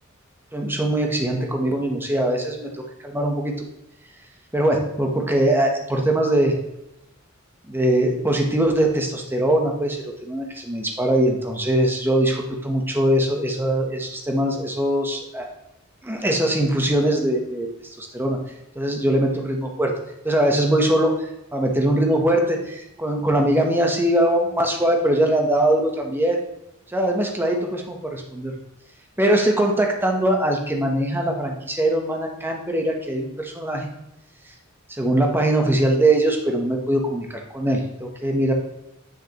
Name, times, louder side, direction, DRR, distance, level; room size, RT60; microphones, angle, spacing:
voice 1, 0.5-3.6 4.5-6.5 7.7-15.5 16.0-17.7 18.0-18.4 18.7-19.9 20.2-26.4 26.9-28.5 29.2-33.9 35.0-38.5, right 1 dB, 10° right, 2 dB, 0.9 m, -21 dB
7.6 x 6.1 x 3.0 m, 0.87 s
head